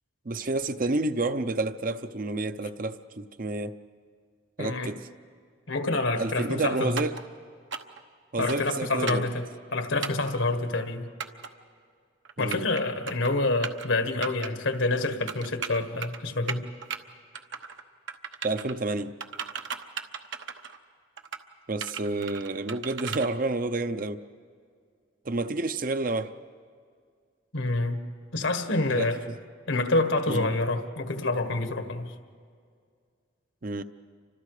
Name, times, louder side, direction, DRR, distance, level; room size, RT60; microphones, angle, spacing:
voice 1, 0.2-3.8 4.6-5.1 6.2-7.2 8.3-9.3 12.4-12.7 18.4-19.1 21.7-24.2 25.2-26.3 28.9-29.4 30.3-30.5 33.6-33.8, right 2 dB, 45° right, 10 dB, 0.7 m, -29 dB
voice 2, 4.6-4.9 5.7-7.0 8.4-9.5 9.7-11.1 12.4-16.7 27.5-28.0 28.3-29.2 29.7-32.1, left 2 dB, 75° left, 7 dB, 1.6 m, -27 dB
sound 1, 7.0-7.2 7.7-8.0 8.5-8.7 9.1-9.3 10.0-10.3 11.2-11.5 12.3-12.8 13.1-13.3 13.6-13.9 14.2-14.5 15.3-16.2 16.5-17.0 17.3-17.8 18.1-18.7 19.2-20.8 21.2-21.4 21.8-23.3, right 6 dB, 70° right, 1.1 m, -36 dB
30.0 x 25.5 x 5.0 m, 2.1 s
head